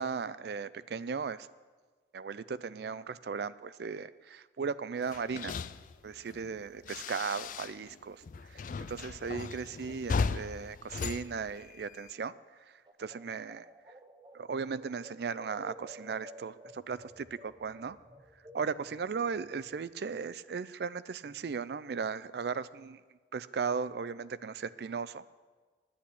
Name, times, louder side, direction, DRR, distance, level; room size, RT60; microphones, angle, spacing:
voice 1, 0.0-1.5 2.1-5.5 6.0-8.2 8.5-12.3 13.0-13.7 14.3-18.0 18.5-23.0 23.3-25.2, right 5 dB, 60° right, 17 dB, 0.4 m, -37 dB
sound 1, 5.0-8.0 8.2-12.1, left 4 dB, 45° left, 0.3 m, -37 dB
sound 2, 12.9-19.8, equal, 25° right, 0.8 m, -53 dB
10.0 x 8.3 x 8.5 m, 1.4 s
head